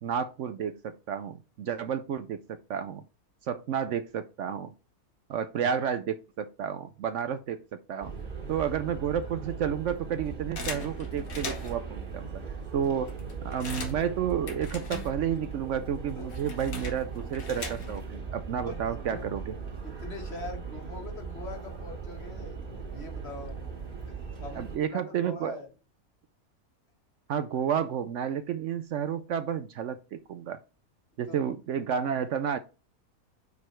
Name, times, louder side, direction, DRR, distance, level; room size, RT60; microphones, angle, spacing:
voice 1, 0.0-3.0 3.4-4.7 5.3-8.1 8.5-12.4 12.7-13.2 13.4-19.6 24.6-25.6 27.3-30.6 31.2-32.6, right 8 dB, 65° right, 10 dB, 0.8 m, -31 dB
sound 1, 8.0-24.8, right 5 dB, 35° right, 1.7 m, -39 dB
sound 2, 10.6-11.9 12.5-12.6 12.8-15.5 15.8-18.2, left 2 dB, 75° left, 2.0 m, -40 dB
voice 2, 18.6-19.2 19.8-23.6 24.0-24.1 24.4-25.7 31.3-31.5, left 3 dB, 45° left, 3 dB, 1.7 m, -43 dB
5.4 x 4.9 x 4.4 m, 0.31 s
omnidirectional pair, 1.5 m